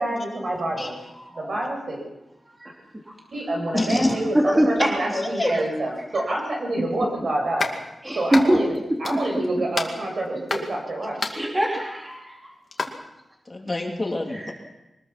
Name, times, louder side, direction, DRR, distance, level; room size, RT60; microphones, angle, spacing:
voice 1, 0.0-0.9 1.4-2.0 3.3-7.7 8.2-8.7 9.0-11.2, right 1 dB, 55° right, 0 dB, 7.6 m, -27 dB
voice 2, 0.8-1.8 2.4-2.7 3.0-3.5 4.3-5.1 6.2-6.4 6.8-6.9 8.0-8.6 9.1-9.4 11.3-12.8 14.3-14.5, right 1 dB, 15° right, -1 dB, 3.1 m, -25 dB
voice 3, 3.7-4.2 5.1-5.5 13.5-14.5, left 2 dB, 25° left, 1 dB, 2.9 m, -26 dB
sound 1, 7.6-7.8 8.3-8.8 9.0-9.5 9.7-10.7 11.2-11.5 12.7-12.9, left 3 dB, 40° left, 2.4 m, -29 dB
23.5 x 20.5 x 6.0 m, 0.95 s
wide cardioid pair, 155°, 0 cm